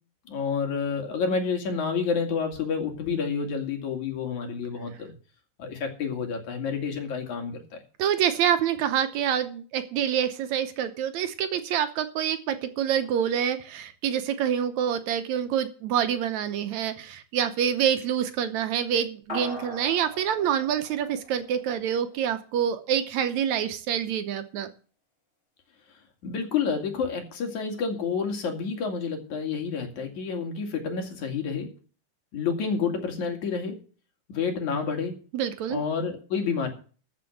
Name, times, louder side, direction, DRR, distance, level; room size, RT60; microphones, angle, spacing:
voice 1, 0.3-5.1 5.6-7.8 26.2-31.7 32.3-33.8 34.3-35.2 35.7-36.7, left 5 dB, 70° left, 3 dB, 3.6 m, -29 dB
voice 2, 8.0-24.7 35.3-35.8, right 9 dB, 70° right, 9 dB, 2.1 m, -26 dB
sound 1, 19.3-22.0, left 1 dB, 20° left, 3.7 m, -40 dB
14.0 x 6.2 x 7.8 m, 0.40 s
omnidirectional pair, 3.6 m